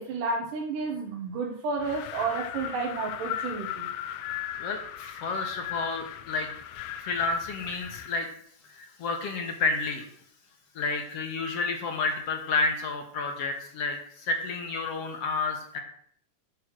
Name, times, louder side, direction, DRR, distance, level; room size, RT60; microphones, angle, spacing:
voice 1, 0.0-3.9, right 4 dB, 85° right, -1 dB, 2.9 m, -31 dB
Wind, 1.8-8.2, left 11 dB, 80° left, 2.0 m, -37 dB
voice 2, 4.6-6.5 7.0-8.3 8.7-10.1 10.8-15.8, left 4 dB, 60° left, 4 dB, 1.9 m, -30 dB
10.5 x 4.9 x 6.4 m, 0.63 s
omnidirectional pair, 3.6 m